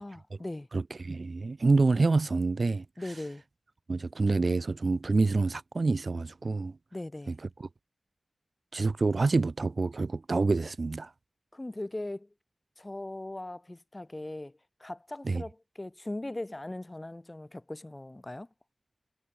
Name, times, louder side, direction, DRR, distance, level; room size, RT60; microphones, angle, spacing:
voice 1, 0.0-0.7 3.0-3.4 6.9-7.4 11.5-12.3 12.8-14.5 14.8-18.5, left 1 dB, 30° left, 2.7 m, -39 dB
voice 2, 0.7-2.8 3.9-6.8 7.3-7.4 8.7-11.1 15.2-15.4, right 3 dB, 65° right, 0.5 m, -27 dB
wide cardioid pair, 65°, 0 cm